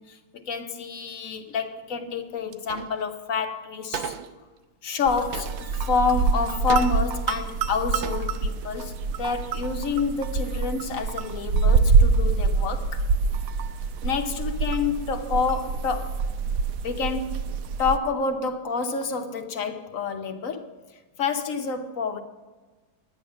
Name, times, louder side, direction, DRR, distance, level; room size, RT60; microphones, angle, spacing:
voice 1, 0.0-4.1 4.8-13.0 14.0-16.2 16.8-17.5 17.8-20.7 21.2-22.2, left 5 dB, 55° left, 6 dB, 1.1 m, -28 dB
sound 1, 2.5-3.0 3.3-3.4 3.9-4.4 5.3-6.0 6.7-7.3 7.7-7.8 8.0-8.4, right 8 dB, 90° right, 1.5 m, -35 dB
sound 2, 5.1-18.0, right 4 dB, 70° right, 0.8 m, -25 dB
11.5 x 9.5 x 5.5 m, 1.3 s
omnidirectional pair, 2.0 m